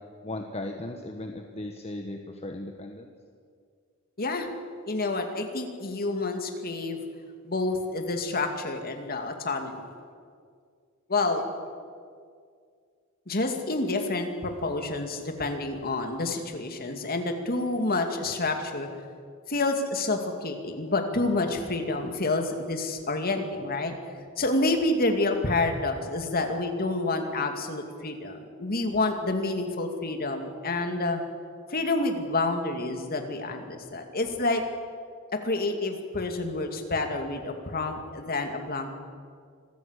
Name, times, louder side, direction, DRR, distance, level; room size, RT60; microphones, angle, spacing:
voice 1, 0.2-3.1, left 1 dB, 30° left, 3 dB, 1.3 m, -37 dB
voice 2, 4.9-7.0 7.5-9.9 11.1-11.5 13.3-18.9 19.5-23.9 24.4-31.2 31.7-34.6 35.3-38.9, left 2 dB, 45° left, 5 dB, 2.5 m, -28 dB
25.5 x 15.0 x 8.3 m, 2.1 s
head